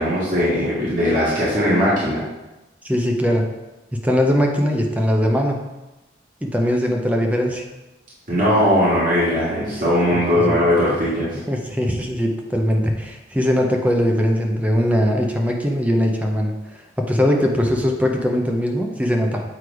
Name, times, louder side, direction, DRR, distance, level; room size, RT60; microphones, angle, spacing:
voice 1, 0.0-2.2 8.3-11.4, equal, 45° right, -8 dB, 1.8 m, -19 dB
voice 2, 2.8-3.5 3.9-5.7 6.4-7.6 10.1-10.6 11.5-19.4, equal, 10° right, 2 dB, 0.6 m, -20 dB
7.8 x 3.2 x 4.8 m, 1.0 s
head